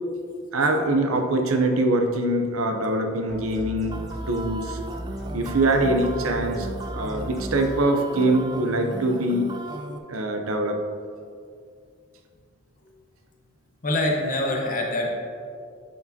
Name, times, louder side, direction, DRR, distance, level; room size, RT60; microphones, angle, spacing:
voice 1, 0.5-4.0 4.3-4.8 5.3-6.7 6.9-9.5 10.1-10.8, right 1 dB, 70° right, 5 dB, 0.6 m, -23 dB
sound 1, 3.3-7.7, equal, ahead, 1.5 m, -36 dB
sound 2, 3.9-10.0, right 2 dB, 20° right, 0.3 m, -37 dB
voice 2, 13.8-15.1, left 1 dB, 40° left, -1 dB, 1.0 m, -24 dB
9.9 x 4.7 x 2.8 m, 2.3 s
head